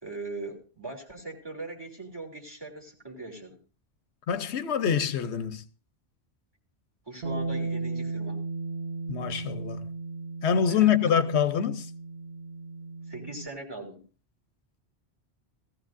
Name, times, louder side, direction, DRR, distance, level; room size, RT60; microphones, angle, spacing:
voice 1, 0.0-3.6 7.1-8.4 10.7-11.1 13.1-14.0, right 2 dB, 20° right, 3.5 m, -40 dB
voice 2, 4.3-5.6 9.1-9.9 10.4-11.9, left 8 dB, 90° left, 1.1 m, -25 dB
Bass guitar, 7.2-13.5, right 3 dB, 65° right, 1.4 m, -35 dB
18.0 x 15.0 x 2.6 m
omnidirectional pair, 1.1 m